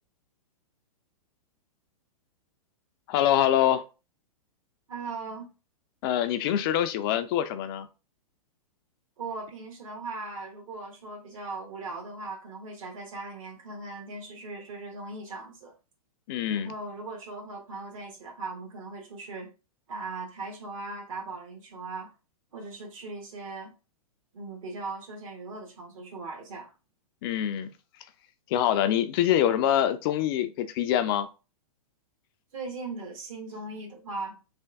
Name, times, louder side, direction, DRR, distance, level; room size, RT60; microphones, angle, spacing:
voice 1, 3.1-3.8 6.0-7.9 16.3-16.7 27.2-27.7 28.5-31.3, left 11 dB, 40° left, 0.4 m, -25 dB
voice 2, 4.9-5.5 9.2-15.7 16.5-19.5 19.9-22.1 22.5-23.7 24.3-26.7 32.5-34.4, right 3 dB, 60° right, 1.4 m, -39 dB
3.4 x 2.5 x 3.3 m
hypercardioid pair, 115°, 19 cm